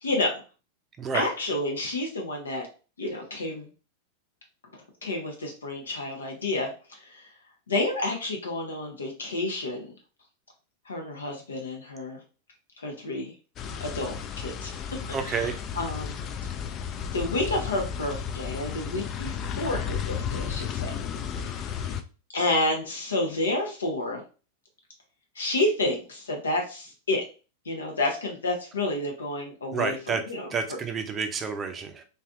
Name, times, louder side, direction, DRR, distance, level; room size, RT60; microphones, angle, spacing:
voice 1, 0.0-0.4 1.1-2.7 3.0-3.7 5.0-7.3 7.7-9.9 10.9-12.2 12.8-13.3 13.8-16.2 17.1-20.9 21.4-22.0 22.3-24.2 25.4-27.2 27.7-30.5, left 2 dB, 70° left, 2 dB, 0.7 m, -30 dB
voice 2, 1.0-1.3 15.1-15.5 29.7-30.2 30.5-32.0, right 5 dB, 25° right, 7 dB, 0.5 m, -29 dB
sound 1, 13.6-22.0, left 8 dB, 30° left, 0.3 m, -33 dB
3.3 x 2.6 x 2.4 m, 0.35 s
figure-of-eight pair, 90°, 0 cm